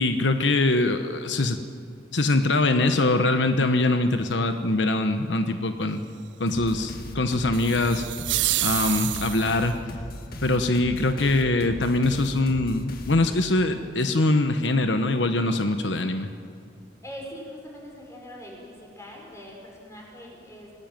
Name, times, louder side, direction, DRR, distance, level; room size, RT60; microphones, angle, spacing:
voice 1, 0.0-1.6 2.1-6.0 6.4-8.1 8.6-9.8 10.4-16.3, left 2 dB, 80° left, 8 dB, 1.2 m, -23 dB
sound 1, 6.5-13.6, equal, 55° left, 2.3 m, -39 dB
sound 2, 7.5-9.7, right 17 dB, 80° right, 0.5 m, -28 dB
voice 2, 17.0-20.7, equal, 15° left, -1 dB, 5.9 m, -42 dB
26.5 x 17.5 x 9.1 m, 2.4 s
head